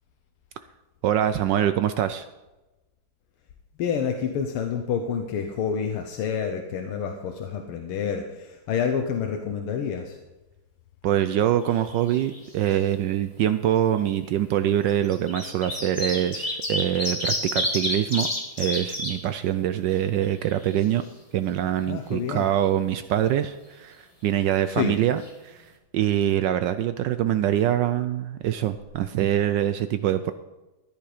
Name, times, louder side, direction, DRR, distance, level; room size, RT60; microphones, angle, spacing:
voice 1, 1.0-2.3 11.0-18.3 18.6-21.0 21.3-30.3, right 11 dB, 75° right, 11 dB, 1.0 m, -24 dB
voice 2, 3.8-10.2 21.9-22.5 24.7-25.0, left 7 dB, 85° left, 4 dB, 1.8 m, -28 dB
sound 1, 11.6-12.4 12.6-12.7 13.9-14.0 14.9-19.1 19.6-19.7 19.9-21.0 24.9-25.0 25.2-25.3, left 1 dB, 15° left, 1.8 m, -29 dB
14.0 x 10.5 x 5.0 m, 1.1 s
omnidirectional pair, 2.4 m